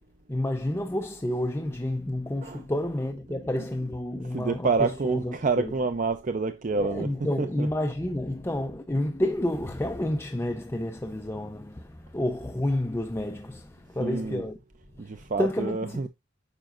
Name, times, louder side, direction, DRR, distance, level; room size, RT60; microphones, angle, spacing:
voice 1, 0.3-5.7 6.7-14.6 15.0-15.1 15.4-16.1, left 1 dB, 15° left, 0.5 m, -30 dB
voice 2, 4.1-7.7 14.0-14.4 15.0-16.1, right 4 dB, 40° right, 0.5 m, -28 dB
8.9 x 5.8 x 2.5 m
head